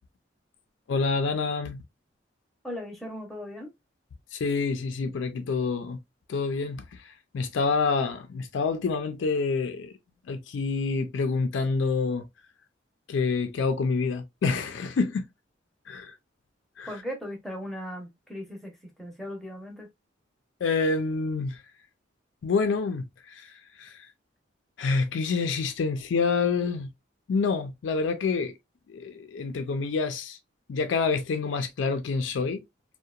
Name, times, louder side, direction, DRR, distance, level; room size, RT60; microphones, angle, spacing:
voice 1, 0.9-1.8 4.3-6.0 6.3-9.9 10.3-12.3 13.1-15.3 15.9-16.1 16.8-16.9 20.6-21.6 22.4-24.1 24.8-26.9 27.3-28.5 28.9-30.4 30.7-32.6, left 4 dB, 80° left, 0.4 m, -27 dB
voice 2, 2.6-3.7 16.9-19.9, equal, ahead, 0.7 m, -38 dB
2.7 x 2.1 x 2.3 m
head